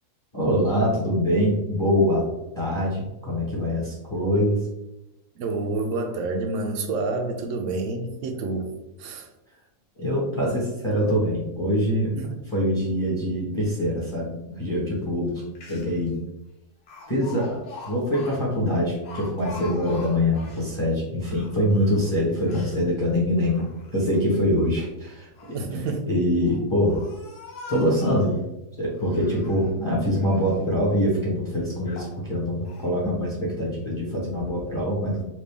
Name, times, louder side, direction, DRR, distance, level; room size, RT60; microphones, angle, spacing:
voice 1, 0.3-2.2 2.6-4.6 10.0-12.1 12.5-15.4 15.7-16.2 17.1-23.7 23.9-25.6 26.1-27.0 27.7-28.4 28.8-35.2, equal, 20° left, -6 dB, 0.9 m, -24 dB
voice 2, 5.4-8.7 9.0-9.3 12.1-12.4 25.5-26.1, right 3 dB, 65° right, 5 dB, 0.8 m, -28 dB
Speech, 15.3-15.4 15.6-16.1 16.9-20.7 21.2-22.8 23.4-24.2 25.1-25.7 26.4-28.4 28.9-29.8 30.1-30.7 31.2-31.3 31.9-32.2 32.7-32.9, left 4 dB, 50° left, 0.8 m, -43 dB
4.4 x 2.4 x 3.3 m, 0.92 s
omnidirectional pair, 1.7 m